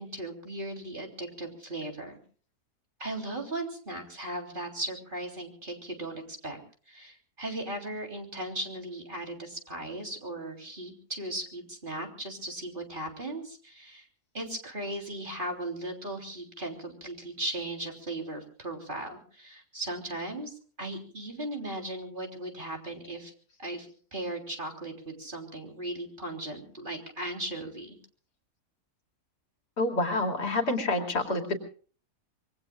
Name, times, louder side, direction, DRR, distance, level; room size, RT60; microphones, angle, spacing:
voice 1, 0.0-2.2 3.0-6.6 6.9-14.1 14.3-23.3 23.6-23.9 24.1-28.0, right 1 dB, 30° right, 2 dB, 3.6 m, -37 dB
voice 2, 29.8-31.6, left 2 dB, 85° left, 3 dB, 3.3 m, -28 dB
26.0 x 23.0 x 2.4 m, 0.42 s
omnidirectional pair, 1.7 m